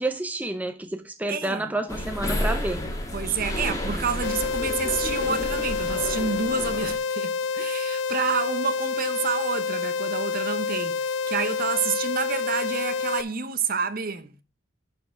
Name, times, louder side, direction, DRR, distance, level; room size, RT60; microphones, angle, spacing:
voice 1, 0.0-2.8, right 2 dB, 10° right, 0.6 m, -29 dB
voice 2, 1.3-1.7 3.1-14.3, right 5 dB, 50° right, 0.9 m, -29 dB
sound 1, 1.9-7.0, left 1 dB, 20° left, 1.6 m, -31 dB
sound 2, 4.2-13.2, left 5 dB, 65° left, 0.4 m, -28 dB
11.0 x 4.5 x 4.6 m
head